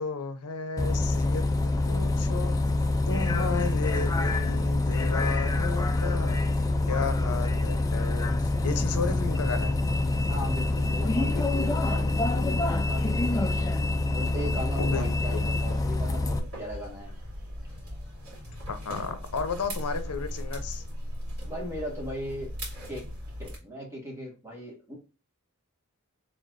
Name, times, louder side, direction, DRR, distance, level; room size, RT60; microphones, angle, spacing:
voice 1, 0.0-1.4 1.9-2.6 3.1-6.4 6.9-9.8 14.8-15.6 18.7-20.8, left 4 dB, 90° left, 0.6 m, -33 dB
Bus, 0.8-16.4, left 2 dB, 15° left, 0.3 m, -26 dB
voice 2, 10.3-13.7 14.1-17.1 19.1-19.2 21.5-22.5 22.9-23.0 23.4-24.9, equal, 10° right, 1.6 m, -38 dB
sound 1, 14.4-23.6, equal, 70° right, 2.3 m, -39 dB
4.2 x 3.4 x 2.5 m
head